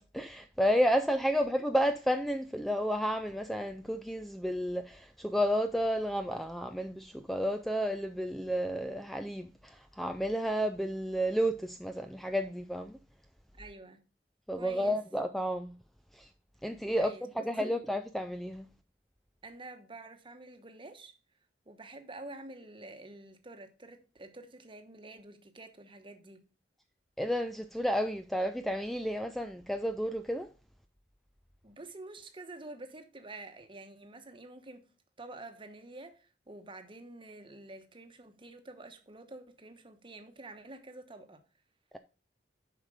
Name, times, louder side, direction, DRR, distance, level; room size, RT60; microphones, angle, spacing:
voice 1, 0.0-13.0 14.5-15.7 16.2-16.3 16.6-17.1 17.5-18.7 27.2-30.5, equal, ahead, 0.3 m, -31 dB
voice 2, 13.5-14.0 14.5-15.0 16.9-17.8 19.4-21.1 21.7-26.5 31.6-34.9 35.2-41.4, right 2 dB, 30° right, 1.1 m, -48 dB
7.4 x 5.0 x 5.0 m
head